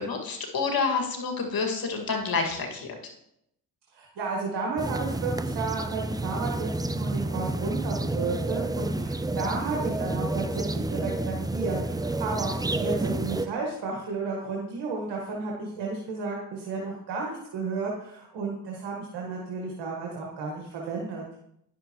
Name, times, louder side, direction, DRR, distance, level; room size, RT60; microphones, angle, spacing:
voice 1, 0.0-3.0, left 4 dB, 60° left, 2 dB, 2.0 m, -28 dB
voice 2, 3.9-21.2, right 4 dB, 85° right, -2 dB, 1.5 m, -33 dB
sound 1, 4.8-13.5, right 2 dB, 10° right, 0.5 m, -30 dB
10.0 x 6.9 x 3.0 m, 0.75 s
supercardioid pair, 60°, 41 cm